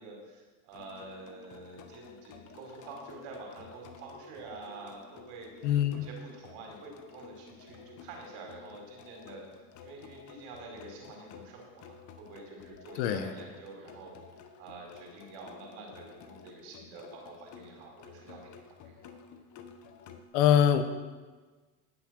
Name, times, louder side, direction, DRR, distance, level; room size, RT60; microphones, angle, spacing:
voice 1, 0.0-5.5 5.9-9.4 9.8-14.2 14.6-18.5 18.8-19.2, right 3 dB, 85° right, 0 dB, 4.6 m, -47 dB
sound 1, 0.7-20.2, left 6 dB, 60° left, 1.5 m, -52 dB
voice 2, 5.6-6.0 12.9-13.3 20.3-20.8, left 9 dB, 90° left, 9 dB, 1.3 m, -23 dB
18.5 x 6.6 x 6.4 m, 1.3 s
supercardioid pair, 115°, 34 cm